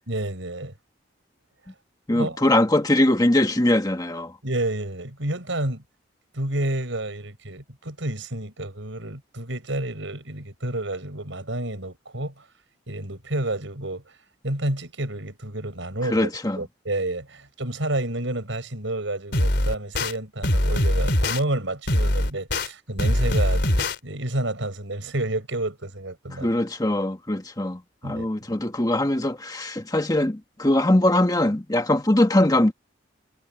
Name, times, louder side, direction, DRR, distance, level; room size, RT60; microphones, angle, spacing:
voice 1, 0.1-0.7 2.1-2.5 4.4-5.8 6.3-12.4 12.9-14.2 14.4-16.3 16.6-26.5 28.0-28.3, right 1 dB, 75° right, 5.0 m, -30 dB
voice 2, 2.1-4.3 16.1-16.6 26.4-32.7, left 1 dB, 20° left, 1.4 m, -21 dB
sound 1, 19.3-20.1 20.4-21.4 21.9-22.7 23.0-24.0, left 1 dB, 55° left, 4.0 m, -22 dB
head